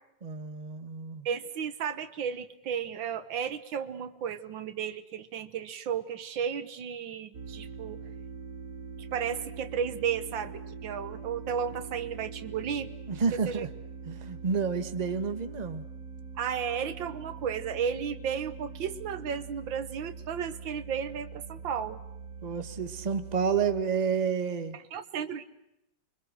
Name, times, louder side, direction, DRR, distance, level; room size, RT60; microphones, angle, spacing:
voice 1, 0.2-1.3 13.1-13.7 14.1-15.8 22.4-24.8, right 6 dB, 25° right, 9 dB, 1.3 m, -30 dB
voice 2, 1.3-8.0 9.0-12.9 13.5-13.7 16.4-22.0 24.7-25.4, right 7 dB, 85° right, 11 dB, 2.0 m, -33 dB
sound 1, 7.3-23.8, right 5 dB, 50° right, 1.6 m, -43 dB
29.5 x 24.0 x 6.2 m, 0.85 s
omnidirectional pair, 2.0 m